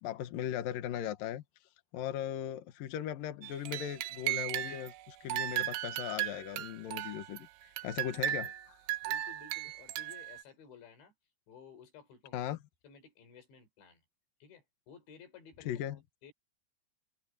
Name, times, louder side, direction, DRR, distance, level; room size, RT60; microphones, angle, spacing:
voice 1, 0.0-1.4 1.9-8.8 12.3-12.6 15.7-16.0, left 10 dB, 65° left, 2.7 m, -38 dB
sound 1, 3.4-4.9 5.3-7.4 7.8-10.4, right 14 dB, 80° right, 3.2 m, -36 dB
voice 2, 9.0-11.1 11.5-12.4 12.8-14.0 14.4-16.3, left 6 dB, 80° left, 7.0 m, -55 dB
omnidirectional pair, 5.1 m